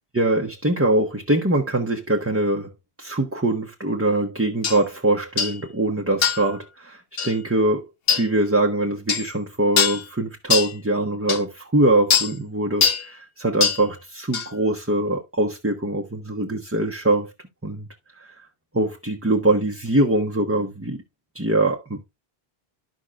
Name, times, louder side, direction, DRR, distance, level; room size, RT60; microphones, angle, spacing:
voice 1, 0.1-2.7 3.0-7.9 8.1-17.3 17.6-17.9 18.2-18.4 18.7-21.0 21.3-22.0, right 1 dB, 15° right, 0.8 m, -23 dB
sound 1, 4.6-4.8 5.4-5.6 6.2-6.5 7.2-7.3 8.1-8.3 9.1-9.3 9.8-10.0 10.5-10.7 11.3-11.4 12.1-12.3 12.8-13.1 13.6-13.8 14.3-14.5, left 6 dB, 70° left, 1.1 m, -21 dB
13.0 x 5.3 x 2.4 m
omnidirectional pair, 1.1 m